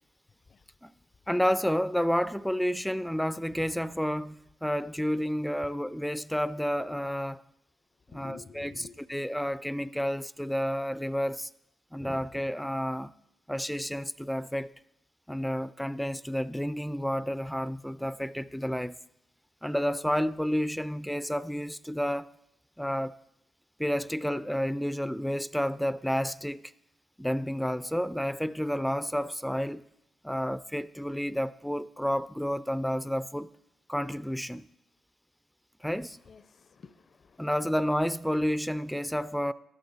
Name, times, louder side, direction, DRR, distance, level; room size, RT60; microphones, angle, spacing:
voice 1, 1.3-7.4 8.1-8.7 9.1-11.5 11.9-13.1 13.5-14.7 15.3-19.0 19.6-22.3 22.8-23.1 23.8-26.7 27.2-29.9 30.2-33.5 33.9-34.7 35.8-36.2 37.4-39.5, equal, 5° left, 0.4 m, -30 dB
voice 2, 8.1-9.0 35.9-37.5 38.8-39.2 39.4-39.5, left 5 dB, 50° left, 0.6 m, -52 dB
12.5 x 12.5 x 4.1 m
hypercardioid pair, 45°, 0 cm